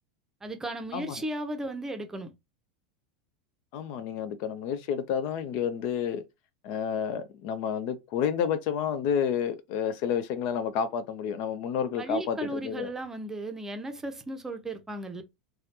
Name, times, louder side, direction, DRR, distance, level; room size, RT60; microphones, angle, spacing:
voice 1, 0.4-2.3 12.0-15.2, right 1 dB, 10° right, 0.6 m, -35 dB
voice 2, 3.7-6.2 6.6-12.9, left 8 dB, 50° left, 0.4 m, -30 dB
3.1 x 2.3 x 2.8 m
figure-of-eight pair, 85°, 4 cm